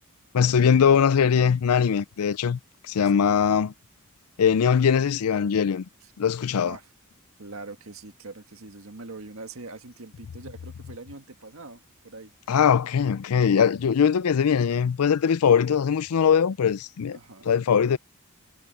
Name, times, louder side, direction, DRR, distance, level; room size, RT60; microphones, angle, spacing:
voice 1, 0.3-2.6 2.9-3.7 4.4-5.8 6.2-6.8 12.5-17.2 17.5-18.0, left 7 dB, 85° left, 0.4 m, -21 dB
voice 2, 3.1-3.5 6.0-6.1 6.5-6.9 7.4-12.3 17.1-17.6, right 3 dB, 65° right, 1.8 m, -43 dB
head